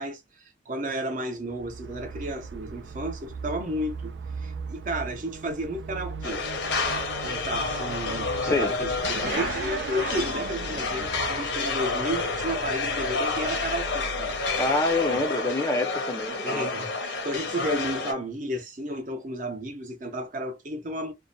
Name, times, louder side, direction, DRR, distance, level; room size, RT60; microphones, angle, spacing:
voice 1, 0.0-4.1 4.4-6.4 7.2-14.4 16.4-21.1, right 1 dB, 45° right, 0.7 m, -33 dB
Motorcycle / Accelerating revving vroom, 1.4-15.2, right 4 dB, 70° right, 0.4 m, -38 dB
sound 1, 6.2-18.1, left 4 dB, 75° left, 0.8 m, -29 dB
voice 2, 8.4-8.7 14.6-16.7, left 2 dB, 15° left, 0.4 m, -26 dB
2.5 x 2.1 x 2.6 m
head